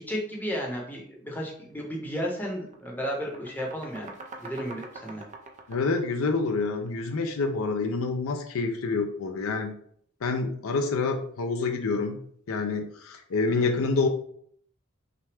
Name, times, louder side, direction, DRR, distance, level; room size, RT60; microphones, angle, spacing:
voice 1, 0.0-4.1 4.4-5.2 13.5-13.7, equal, 10° left, -2 dB, 0.9 m, -33 dB
sound 1, 1.7-1.9 2.3-7.2, right 3 dB, 35° right, 0.5 m, -45 dB
voice 2, 5.7-9.7 10.2-12.2 12.5-14.1, left 3 dB, 70° left, 5 dB, 0.5 m, -27 dB
5.8 x 2.2 x 3.4 m, 0.63 s
head